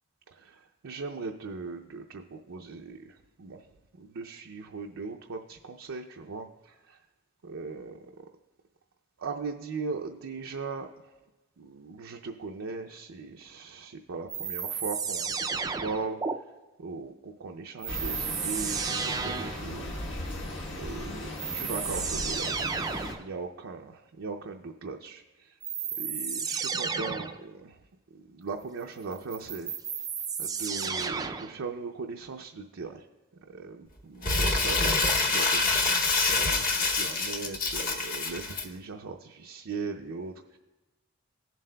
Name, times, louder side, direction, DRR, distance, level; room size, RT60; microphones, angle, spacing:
voice 1, 0.3-3.7 3.9-7.0 7.4-8.3 9.2-11.1 11.6-16.2 16.8-19.9 20.7-22.7 23.1-25.6 26.0-27.8 28.1-29.7 30.4-33.1 33.5-40.6, right 4 dB, 75° right, 2 dB, 0.5 m, -39 dB
sound 1, 14.3-16.3 17.8-19.6 20.9-21.0 21.4-23.2 25.6-27.4 29.1-31.6, right 6 dB, 20° right, 0.3 m, -32 dB
sound 2, 17.9-23.1, left 1 dB, 60° left, 1.3 m, -37 dB
Crumpling crinkling, 34.2-38.6, left 3 dB, 40° left, 0.9 m, -26 dB
17.0 x 7.4 x 2.2 m, 1.1 s
head